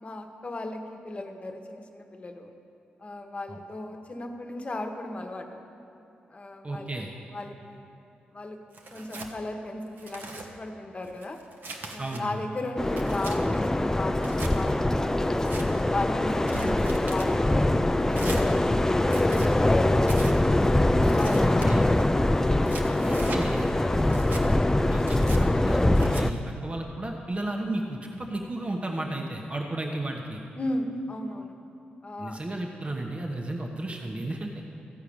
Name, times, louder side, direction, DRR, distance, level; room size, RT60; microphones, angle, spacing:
voice 1, 0.0-2.5 3.0-5.6 6.3-7.0 7.3-7.8 8.3-8.6 8.9-11.4 11.9-14.2 14.5-15.5 15.9-18.6 19.1-20.6 21.1-22.4 22.8-24.1 30.5-31.5 32.0-32.4, left 2 dB, 35° left, 4 dB, 1.2 m, -36 dB
voice 2, 6.6-7.1 12.0-12.4 16.4-16.5 21.4-21.8 23.0-23.7 24.8-30.4 32.2-34.6, right 1 dB, 35° right, 1 dB, 1.1 m, -33 dB
Tearing, 8.7-9.3 9.9-10.5 11.0-12.2 12.7-13.4 14.2-14.5 15.2-15.7 16.3-17.3 18.1-18.5 19.0-19.5 20.0-20.4 21.0-21.7 22.4-23.4 24.0-24.4 25.0-25.4 26.0-26.2, right 3 dB, 65° right, 1.2 m, -41 dB
sound 1, 12.8-26.3, left 1 dB, 15° left, 0.4 m, -23 dB
14.5 x 4.8 x 8.7 m, 2.7 s
cardioid pair, 60°, 4 cm